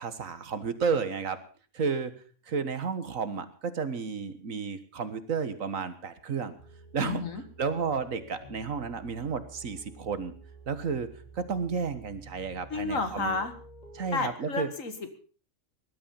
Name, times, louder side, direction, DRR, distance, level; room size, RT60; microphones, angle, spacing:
voice 1, 0.0-1.4 1.7-2.1 2.5-6.6 6.9-7.2 7.6-10.3 10.7-11.1 11.3-13.4 13.9-14.7, right 5 dB, 70° right, 12 dB, 1.8 m, -32 dB
sound 1, 6.6-14.2, right 2 dB, 30° left, 3.1 m, -50 dB
voice 2, 7.0-7.4 12.7-13.5 14.1-15.2, left 4 dB, 70° left, 9 dB, 2.3 m, -31 dB
19.5 x 12.0 x 5.5 m, 0.40 s
omnidirectional pair, 1.4 m